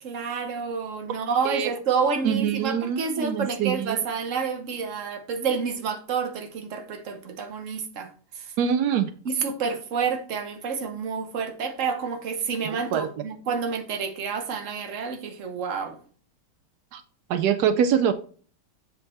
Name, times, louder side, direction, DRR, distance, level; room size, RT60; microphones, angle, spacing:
voice 1, 0.0-8.1 8.4-8.5 9.2-16.0, right 5 dB, 50° right, 1.0 m, -29 dB
voice 2, 2.2-4.0 8.6-9.1 12.6-13.1 16.9-17.0 17.3-18.1, right 8 dB, 85° right, 0.8 m, -24 dB
7.4 x 4.5 x 4.1 m
omnidirectional pair, 2.3 m